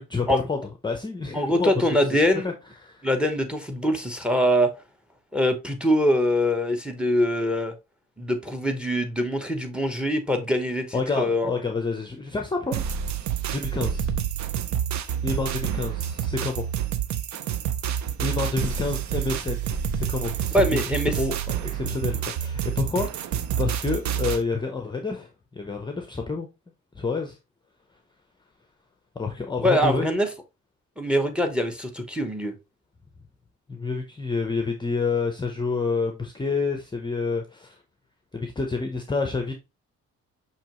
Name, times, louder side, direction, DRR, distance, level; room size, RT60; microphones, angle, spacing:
voice 1, 0.0-2.5 2.8-3.1 10.9-12.8 13.5-14.1 15.2-16.6 18.2-23.3 23.6-26.5 26.9-27.4 29.2-30.1 33.7-37.7 38.3-39.5, left 4 dB, 15° left, 0.6 m, -29 dB
voice 2, 1.3-2.5 3.0-4.7 5.3-7.7 8.2-11.6 20.5-21.1 29.6-30.3 31.0-32.5, equal, 5° right, 1.0 m, -23 dB
sound 1, 12.7-24.4, right 9 dB, 70° right, 0.6 m, -28 dB
5.9 x 3.0 x 2.9 m
cardioid pair, 90°, 30 cm